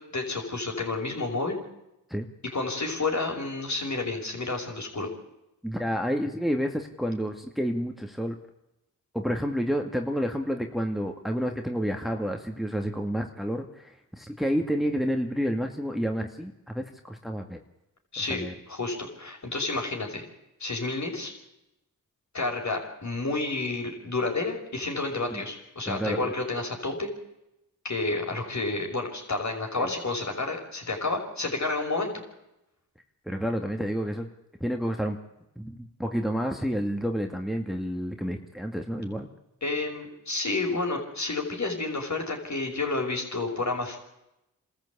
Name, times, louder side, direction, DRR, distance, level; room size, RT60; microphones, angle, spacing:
voice 1, 0.1-1.6 2.5-5.1 18.1-18.4 18.7-20.2 20.6-21.3 22.3-27.1 27.8-32.1 39.6-44.0, left 3 dB, 50° left, 2 dB, 5.8 m, -30 dB
voice 2, 5.6-8.4 9.1-17.6 18.3-18.5 25.3-25.4 25.9-26.3 29.8-29.9 33.3-34.3 34.6-35.2 35.6-39.3, equal, ahead, 4 dB, 2.1 m, -29 dB
24.5 x 13.5 x 8.5 m, 0.89 s
supercardioid pair, 40°, 36 cm